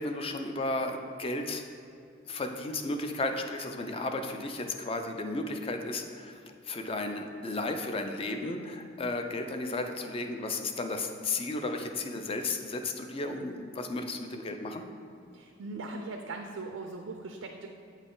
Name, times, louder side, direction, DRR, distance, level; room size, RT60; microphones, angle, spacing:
voice 1, 0.0-1.6 2.2-14.9, left 2 dB, 25° left, 5 dB, 0.4 m, -34 dB
voice 2, 15.3-17.7, right 3 dB, 80° right, 3 dB, 0.4 m, -40 dB
8.0 x 4.1 x 3.8 m, 2.5 s
head